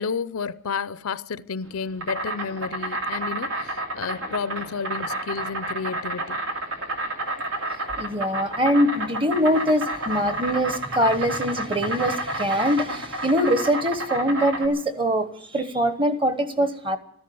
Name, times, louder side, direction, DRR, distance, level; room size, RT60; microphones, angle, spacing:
voice 1, 0.0-6.4, left 5 dB, 85° left, 0.6 m, -31 dB
Insect, 1.6-14.7, right 2 dB, 85° right, 2.6 m, -30 dB
voice 2, 8.0-17.0, equal, 25° right, 1.1 m, -23 dB
13.5 x 11.0 x 9.4 m
head